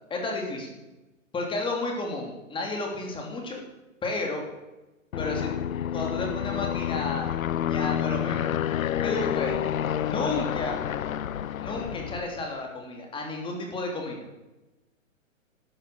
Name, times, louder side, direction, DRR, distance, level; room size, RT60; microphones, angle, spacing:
voice 1, 0.1-0.8 1.3-3.6 4.0-4.4 5.2-5.6 5.9-7.3 7.7-8.5 9.0-9.6 10.0-10.8 11.6-14.2, left 2 dB, 10° left, 1 dB, 3.4 m, -32 dB
Aircraft, 5.1-12.5, left 10 dB, 80° left, 0.8 m, -29 dB
16.5 x 12.5 x 7.0 m, 1.1 s
hypercardioid pair, 145°, 41 cm